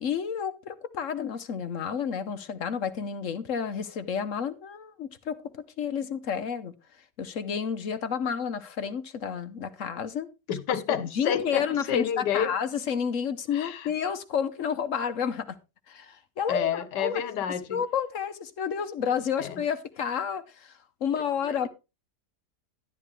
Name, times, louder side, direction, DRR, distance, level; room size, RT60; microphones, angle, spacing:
voice 1, 0.0-5.4 5.8-6.7 7.2-10.3 11.0-15.6 15.9-17.2 17.5-21.7, left 7 dB, 55° left, 1.2 m, -30 dB
voice 2, 10.5-12.5 13.5-13.9 16.5-17.8 19.4-19.6 21.4-21.7, left 8 dB, 85° left, 1.6 m, -29 dB
11.5 x 10.5 x 3.3 m
omnidirectional pair, 1.8 m